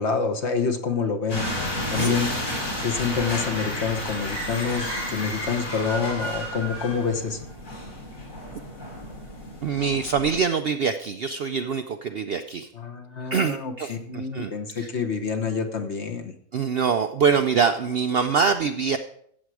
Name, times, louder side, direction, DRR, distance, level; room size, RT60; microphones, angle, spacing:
voice 1, 0.0-1.4 1.9-2.3 2.8-7.4 12.7-16.3, left 5 dB, 50° left, 5 dB, 1.3 m, -27 dB
sound 1, 1.3-10.4, left 1 dB, 85° left, 4.3 m, -32 dB
voice 2, 1.7-2.1 9.6-12.7 13.3-14.5 14.8-14.9 16.5-19.0, right 6 dB, 65° right, 8 dB, 0.6 m, -24 dB
15.0 x 7.5 x 4.8 m, 0.68 s
omnidirectional pair, 1.6 m